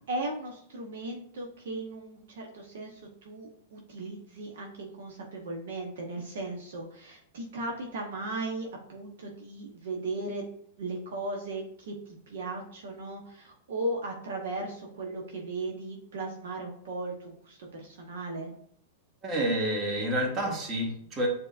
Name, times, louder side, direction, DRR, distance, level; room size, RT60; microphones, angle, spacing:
voice 1, 0.1-10.5 10.8-18.5, right 2 dB, 65° right, 0 dB, 0.9 m, -37 dB
voice 2, 19.2-21.3, right 1 dB, 30° right, 0 dB, 1.4 m, -29 dB
7.5 x 2.8 x 2.5 m, 0.67 s
figure-of-eight pair, 100°, 0 cm